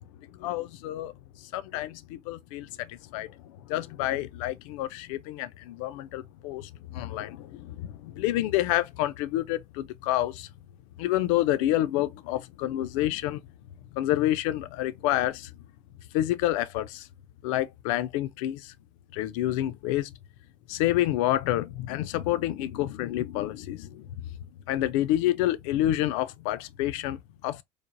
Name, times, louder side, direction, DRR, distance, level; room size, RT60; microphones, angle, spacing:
voice 1, 0.3-1.1 1.4-10.5 11.0-13.4 13.9-15.5 16.1-17.1 17.4-18.7 19.1-20.1 20.7-24.2 24.7-27.6, left 14 dB, 70° left, 0.4 m, -28 dB
3.2 x 2.0 x 2.5 m
supercardioid pair, 95°, 17 cm